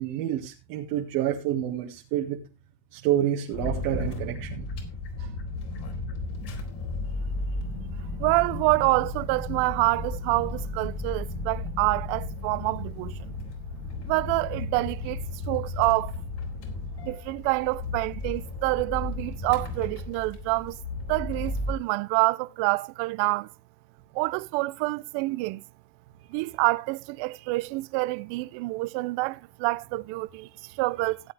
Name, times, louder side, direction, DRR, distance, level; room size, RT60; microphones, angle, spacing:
voice 1, 0.0-2.4 2.9-4.7 5.2-5.3, right 11 dB, 85° right, 2.2 m, -28 dB
sound 1, 3.5-21.7, left 2 dB, 55° left, 4.1 m, -34 dB
voice 2, 8.2-13.1 14.1-16.1 17.0-20.8 21.1-23.5 24.1-25.6 26.3-31.3, right 23 dB, 70° right, 0.8 m, -27 dB
16.0 x 8.3 x 3.4 m
supercardioid pair, 110°, 47 cm